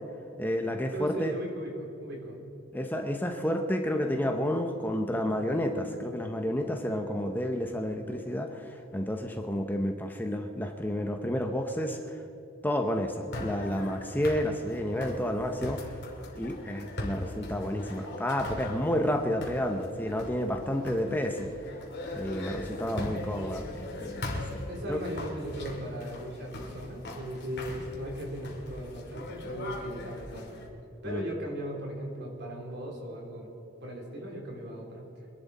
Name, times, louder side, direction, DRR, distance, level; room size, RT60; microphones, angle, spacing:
voice 1, 0.4-1.3 2.7-12.2 12.6-15.9 16.4-21.5 22.1-24.6 24.9-25.0 31.1-31.2, equal, 10° left, 4 dB, 0.8 m, -30 dB
voice 2, 0.9-2.4 24.7-30.6 31.0-33.5 33.8-35.0, right 1 dB, 55° right, 0 dB, 3.4 m, -38 dB
sound 1, 13.3-30.7, left 1 dB, 55° left, 2.7 m, -40 dB
24.5 x 11.0 x 4.2 m, 2.9 s
head